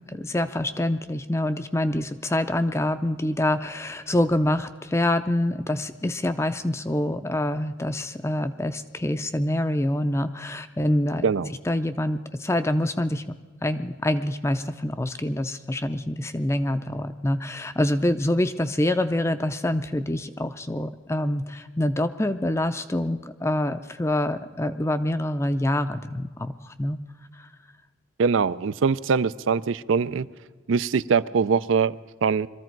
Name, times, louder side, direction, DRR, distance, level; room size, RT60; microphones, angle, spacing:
voice 1, 0.1-11.2 11.6-13.2 13.6-27.0 27.4-27.5, left 1 dB, 15° left, 10 dB, 0.4 m, -26 dB
voice 2, 28.2-30.3 30.7-31.9 32.2-32.5, right 5 dB, 90° right, 17 dB, 0.5 m, -22 dB
22.5 x 14.0 x 4.5 m, 1.5 s
head